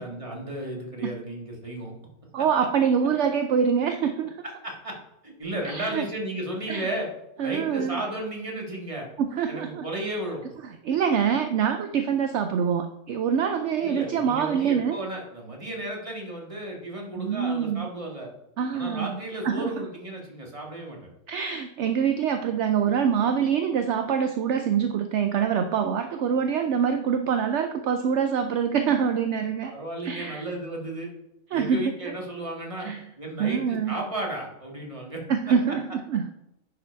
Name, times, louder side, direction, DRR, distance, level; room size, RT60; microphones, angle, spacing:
voice 1, 0.0-1.9 4.4-5.0 5.2-7.1 7.4-9.1 9.5-10.4 13.8-18.3 18.7-21.1 29.7-31.1 31.5-32.9 33.2-35.2, right 1 dB, 20° right, 0 dB, 1.8 m, -34 dB
voice 2, 2.3-4.4 5.6-6.1 6.7-6.9 7.4-8.0 9.2-9.9 10.6-15.0 17.2-17.9 18.6-19.2 19.4-19.9 21.3-29.7 30.0-30.4 31.5-32.1 32.8-33.0 33.4-34.0 35.3-36.3, right 7 dB, 65° right, 7 dB, 0.7 m, -25 dB
10.5 x 4.9 x 4.6 m, 0.88 s
omnidirectional pair, 1.6 m